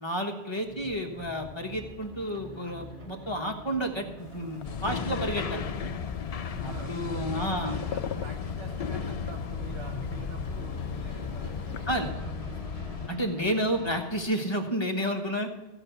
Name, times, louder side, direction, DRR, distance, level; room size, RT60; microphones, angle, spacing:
voice 1, 0.0-5.9 6.6-7.7 11.9-12.1 13.1-15.5, equal, 25° left, 2 dB, 1.3 m, -31 dB
sound 1, 0.7-14.2, equal, 30° right, 4.2 m, -45 dB
sound 2, 4.2-12.1, left 8 dB, 90° left, 1.0 m, -44 dB
sound 3, 4.6-13.1, left 7 dB, 50° left, 0.4 m, -35 dB
voice 2, 6.6-12.6, right 4 dB, 70° right, 1 dB, 1.3 m, -46 dB
16.0 x 5.3 x 8.1 m, 1.1 s
omnidirectional pair, 1.1 m